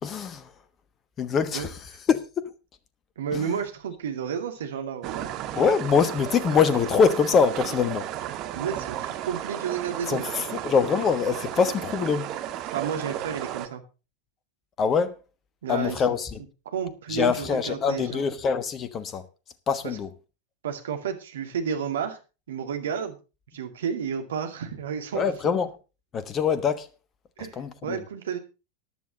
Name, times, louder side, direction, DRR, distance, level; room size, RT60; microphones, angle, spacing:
voice 1, 0.0-0.5 1.2-1.7 2.1-2.5 3.3-3.4 5.5-8.1 10.1-12.3 14.8-15.1 15.7-16.3 17.1-19.2 19.7-20.1 25.1-25.7 26.1-26.9 27.6-28.0, left 6 dB, 25° left, 1.2 m, -24 dB
voice 2, 3.2-5.3 8.5-10.7 12.7-13.8 15.6-16.2 16.7-18.3 19.8-20.0 20.6-22.2 22.5-23.2 23.5-25.5 27.4-28.4, right 7 dB, 60° right, 2.3 m, -31 dB
sound 1, 5.0-13.7, right 12 dB, 35° right, 1.6 m, -34 dB
14.5 x 10.5 x 4.0 m
figure-of-eight pair, 90°, 0 cm